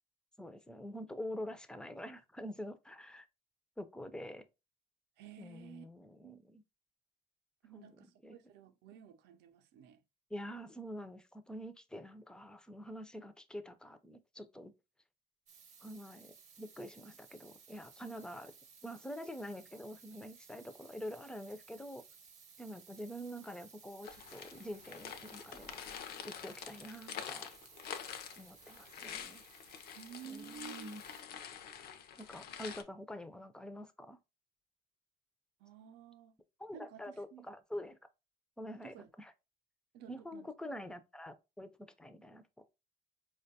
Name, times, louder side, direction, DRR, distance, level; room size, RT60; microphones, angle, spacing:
voice 1, 0.4-3.3 3.8-4.5 5.4-6.6 7.7-8.3 10.3-14.7 15.8-18.5 18.8-22.0 22.6-25.8 26.2-27.5 28.4-29.4 30.2-31.0 32.2-34.2 36.6-38.0 38.6-39.3 40.1-42.4, equal, 5° left, 0.4 m, -46 dB
voice 2, 5.2-5.9 6.2-6.4 7.6-10.0 29.9-31.0 35.6-36.4 36.7-37.5 38.8-39.1 39.9-40.5, right 7 dB, 85° right, 0.5 m, -52 dB
sound 1, 15.5-31.2, right 6 dB, 45° right, 0.8 m, -59 dB
sound 2, 24.0-32.8, left 8 dB, 70° left, 0.5 m, -47 dB
4.4 x 2.2 x 2.6 m
cardioid pair, 110°, 17 cm